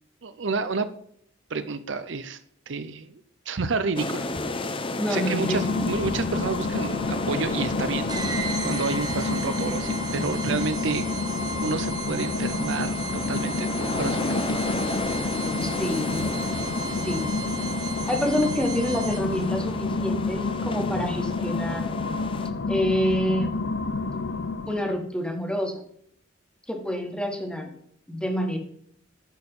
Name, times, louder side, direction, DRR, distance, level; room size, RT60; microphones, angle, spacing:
voice 1, 0.2-0.9 1.5-2.4 2.7-3.2 3.5-4.2 5.1-8.4 8.6-11.1 11.6-14.6, right 4 dB, 70° right, 11 dB, 0.7 m, -30 dB
sound 1, 4.0-22.5, left 2 dB, 25° left, 0.7 m, -33 dB
voice 2, 5.0-5.9 15.6-16.3 17.0-17.3 18.1-21.9 22.7-23.5 24.7-25.8 26.7-27.7 28.1-28.6, equal, 5° left, 3 dB, 1.6 m, -27 dB
sound 2, 5.2-25.0, left 3 dB, 65° left, 0.6 m, -29 dB
sound 3, 8.1-19.5, right 5 dB, 20° right, 0.9 m, -36 dB
11.0 x 4.5 x 5.4 m, 0.65 s
head